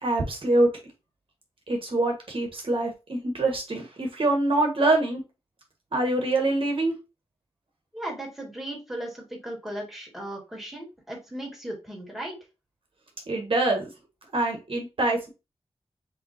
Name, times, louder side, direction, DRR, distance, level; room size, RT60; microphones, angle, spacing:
voice 1, 0.0-0.7 1.7-5.2 5.9-6.9 13.3-13.9 14.3-15.3, right 2 dB, 60° right, 1 dB, 1.4 m, -24 dB
voice 2, 7.9-12.3, right 1 dB, 5° right, -2 dB, 2.1 m, -36 dB
7.0 x 2.8 x 2.7 m, 0.28 s
wide cardioid pair, 90°, 11 cm